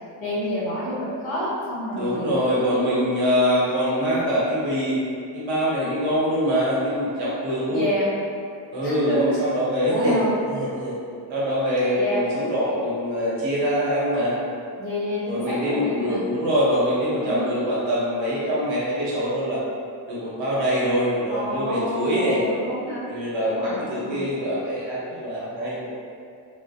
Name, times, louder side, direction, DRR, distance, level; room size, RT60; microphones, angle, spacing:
voice 1, 0.2-2.5 7.7-8.1 8.8-9.2 9.9-10.3 11.9-12.2 14.8-16.2 17.2-17.5 21.3-23.0 23.4-24.2, equal, 50° left, -11 dB, 1.2 m, -28 dB
voice 2, 1.9-5.0 5.3-7.9 8.7-10.2 10.5-10.9 11.3-14.4 15.3-19.6 20.1-22.4 23.1-25.9, equal, 75° right, -7 dB, 0.9 m, -24 dB
2.2 x 2.1 x 2.6 m, 2.3 s
cardioid pair, 160°, 46 cm